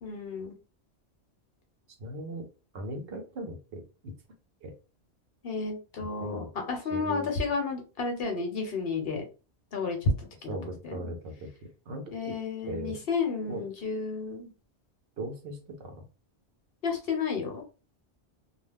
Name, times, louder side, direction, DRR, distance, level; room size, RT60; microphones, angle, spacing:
voice 1, 0.0-0.5 5.4-9.2 9.7-10.6 10.8-11.0 12.1-14.5 16.8-17.6, left 4 dB, 65° left, 3 dB, 0.9 m, -31 dB
voice 2, 2.0-2.5 2.7-4.1 4.6-4.7 6.0-6.5 6.9-7.3 10.5-12.4 12.7-13.0 13.5-13.7 15.2-16.1, right 1 dB, 65° right, 5 dB, 0.9 m, -39 dB
2.3 x 2.2 x 3.4 m, 0.33 s
omnidirectional pair, 1.1 m